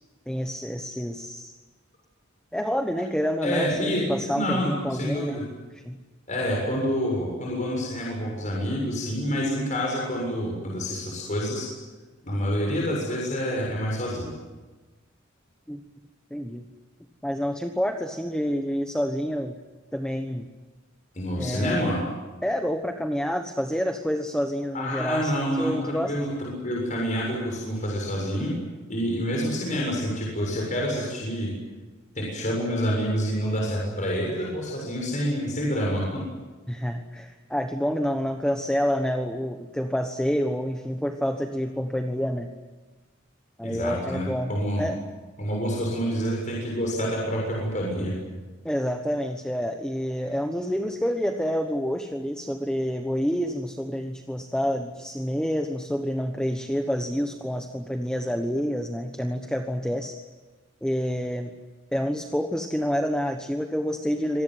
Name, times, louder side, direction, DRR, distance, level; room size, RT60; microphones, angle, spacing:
voice 1, 0.3-1.5 2.5-5.4 5.7-6.0 15.7-15.8 16.3-16.6 17.2-19.6 19.9-20.5 21.4-21.9 22.4-26.1 36.7-42.5 43.6-45.0 48.6-60.2 60.8-61.5 61.9-64.4, equal, 5° left, 5 dB, 1.2 m, -28 dB
voice 2, 3.4-5.4 6.3-11.7 12.2-14.3 21.1-22.0 24.7-28.5 28.9-31.5 32.2-36.2 43.6-44.9 45.4-48.2, equal, 40° left, -2 dB, 7.1 m, -27 dB
26.0 x 19.5 x 9.5 m, 1.3 s
head